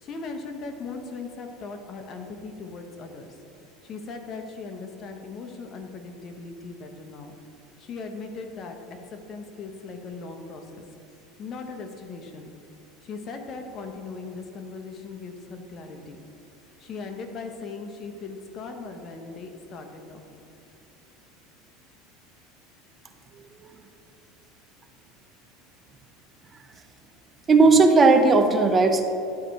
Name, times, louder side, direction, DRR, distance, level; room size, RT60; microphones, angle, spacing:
voice 1, 0.0-3.3 3.8-7.4 7.8-8.8 9.1-10.8 11.4-12.5 13.0-16.2 16.8-20.5, left 4 dB, 40° left, 5 dB, 0.9 m, -38 dB
voice 2, 27.5-29.0, right 3 dB, 25° right, 6 dB, 0.6 m, -17 dB
11.5 x 4.4 x 4.1 m, 2.7 s
supercardioid pair, 120°, 0 cm